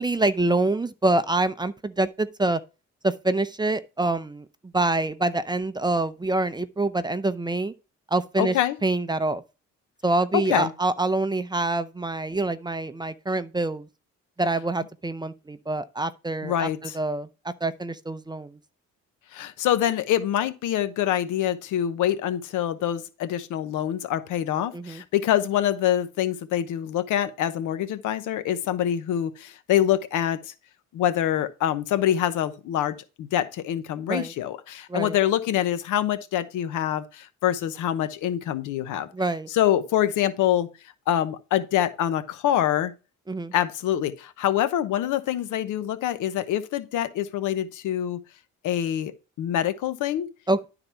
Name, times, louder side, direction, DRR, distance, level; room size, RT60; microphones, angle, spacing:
voice 1, 0.0-2.6 3.0-4.5 4.7-7.7 8.1-8.5 8.8-9.4 10.0-13.9 14.4-18.6 24.7-25.0 34.1-34.3 34.9-35.2 39.1-39.5 43.3-43.5 50.5-50.7, right 2 dB, 15° right, 0.6 m, -26 dB
voice 2, 8.4-8.8 10.3-10.7 16.4-17.0 19.3-30.5 30.9-39.1 39.5-40.7 41.1-42.9 43.5-48.2 48.6-50.3, left 11 dB, 90° left, 0.9 m, -25 dB
11.5 x 4.0 x 4.5 m
cardioid pair, 90°, 30 cm